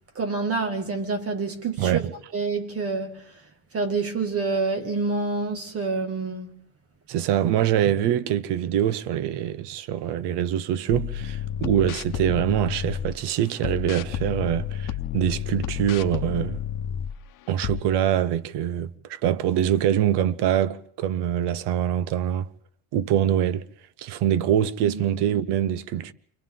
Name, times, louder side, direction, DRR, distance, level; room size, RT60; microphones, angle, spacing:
voice 1, 0.2-2.0 2.3-3.5 3.7-6.5 24.9-25.0, right 4 dB, 35° right, 2.1 m, -27 dB
voice 2, 1.8-2.1 7.1-16.6 17.5-22.5 22.9-23.6 24.0-26.1, right 10 dB, 90° right, 0.9 m, -24 dB
sound 1, 10.9-13.2 13.6-17.2 17.6-17.8, left 10 dB, 55° left, 1.0 m, -31 dB
28.5 x 25.5 x 3.8 m
cardioid pair, 160°, 39 cm